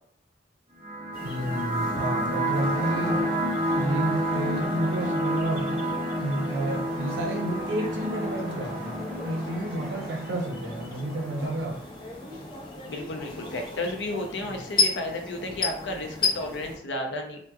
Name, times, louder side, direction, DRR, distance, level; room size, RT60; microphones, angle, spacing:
sound 1, 0.8-11.7, equal, 30° right, 0.7 m, -30 dB
sound 2, 1.1-16.8, left 3 dB, 25° left, 0.4 m, -35 dB
voice 1, 1.2-3.3 3.7-5.9 6.2-11.8 14.4-14.5, right 1 dB, 90° right, 1 dB, 0.6 m, -30 dB
sound 3, 2.3-16.1, left 1 dB, 5° left, 1.1 m, -44 dB
voice 2, 12.9-17.4, left 2 dB, 85° left, 3 dB, 0.5 m, -33 dB
2.8 x 2.1 x 2.2 m, 0.64 s
head